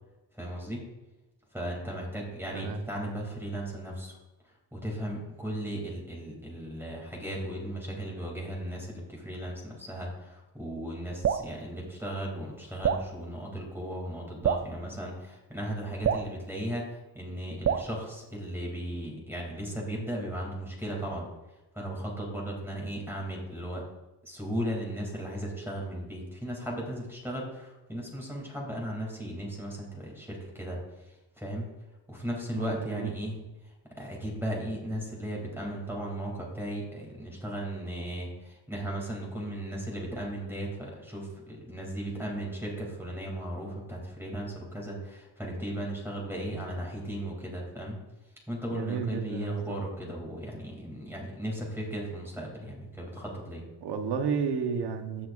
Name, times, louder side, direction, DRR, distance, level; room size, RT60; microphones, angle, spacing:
voice 1, 0.3-0.8 1.5-4.2 4.7-21.3 21.7-23.8 24.2-30.8 31.4-31.7 32.1-33.4 34.0-48.0 48.5-53.6, right 1 dB, 5° right, -2 dB, 2.7 m, -36 dB
Drip, 11.2-11.5 12.8-13.1 14.4-14.7 16.0-16.3 17.6-17.9, right 8 dB, 35° right, 0.5 m, -26 dB
voice 2, 32.5-33.1 48.7-49.6 53.8-55.3, right 6 dB, 70° right, 6 dB, 1.2 m, -31 dB
16.0 x 6.1 x 2.6 m, 1.0 s
cardioid pair, 105°, 41 cm